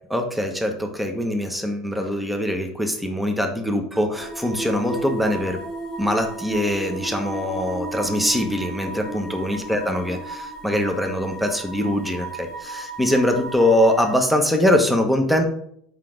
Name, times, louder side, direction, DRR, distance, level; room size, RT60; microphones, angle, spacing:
voice 1, 0.0-5.6 6.0-15.5, left 1 dB, 5° right, 4 dB, 1.1 m, -23 dB
sound 1, 4.1-14.1, right 2 dB, 20° left, 1.7 m, -34 dB
5.7 x 4.9 x 5.1 m, 0.68 s
hypercardioid pair, 85°, 3 cm